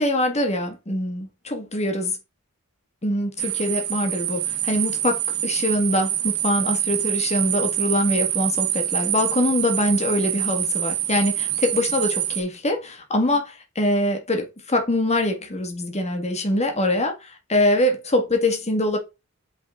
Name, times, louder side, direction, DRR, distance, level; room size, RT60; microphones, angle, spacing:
voice 1, 0.0-2.1 3.0-5.2 5.4-19.0, left 1 dB, 30° left, 1.6 m, -23 dB
sound 1, 3.4-12.4, right 11 dB, 85° right, 1.2 m, -26 dB
8.4 x 4.1 x 3.6 m
head